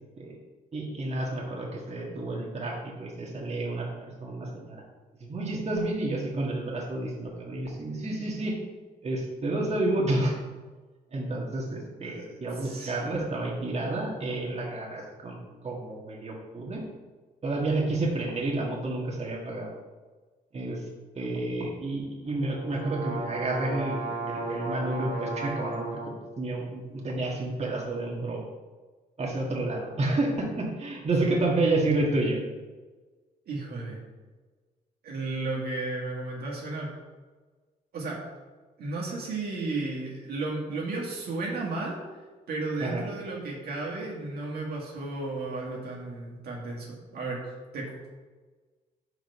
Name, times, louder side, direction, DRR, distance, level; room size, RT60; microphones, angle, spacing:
voice 1, 0.7-4.8 5.2-8.6 9.0-10.3 11.1-15.4 15.6-16.8 17.4-19.7 20.5-20.8 21.1-25.9 26.4-28.4 29.2-32.4 42.8-43.0, right 2 dB, 40° right, -2 dB, 1.7 m, -30 dB
voice 2, 12.0-12.9 33.5-34.0 35.0-36.9 37.9-38.2 38.8-42.0 42.5-47.4 47.7-48.1, right 3 dB, 70° right, -3 dB, 1.7 m, -34 dB
sound 1, 22.2-26.1, right 2 dB, 85° right, 1.8 m, -34 dB
5.1 x 5.0 x 5.4 m, 1.3 s
supercardioid pair, 60°, 17 cm